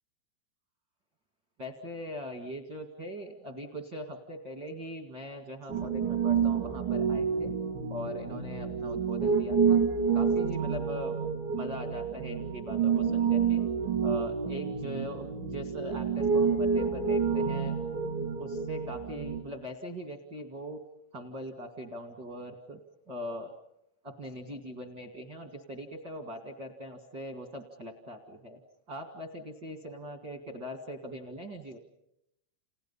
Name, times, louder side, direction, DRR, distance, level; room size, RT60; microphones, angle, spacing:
voice 1, 1.6-7.5 7.9-9.8 10.1-11.2 11.5-13.6 14.0-18.0 18.4-20.8 21.1-22.8 23.1-23.5 24.0-28.6 28.9-31.8, equal, 60° right, 4 dB, 1.1 m, -41 dB
Piano, 5.7-19.4, right 6 dB, 85° right, 5.9 m, -29 dB
29.5 x 29.5 x 5.5 m, 0.80 s
omnidirectional pair, 5.2 m